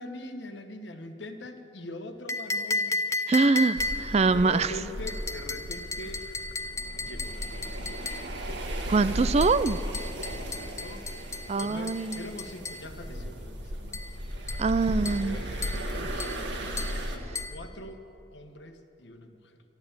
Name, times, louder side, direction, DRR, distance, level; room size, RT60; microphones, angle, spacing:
voice 1, 0.0-3.1 4.1-6.3 7.0-7.9 10.2-11.1 11.5-14.2 14.4-14.5 15.2-16.5 17.0-18.0 18.3-19.6, left 1 dB, 65° left, 6 dB, 1.2 m, -43 dB
sound 1, 2.3-4.2 5.1-8.3 9.4-12.9 13.9-14.1 14.5-14.7 15.0-15.3 15.6-15.9 16.2-16.4 16.8-17.0 17.3-17.6, left 3 dB, 15° left, 0.7 m, -34 dB
voice 2, 3.3-4.7 8.9-9.8 11.5-12.2 14.6-15.4, right 4 dB, 35° right, 14 dB, 0.4 m, -24 dB
sound 2, 3.8-17.2, equal, 65° right, 1.6 m, -36 dB
13.0 x 12.5 x 8.8 m, 2.9 s
head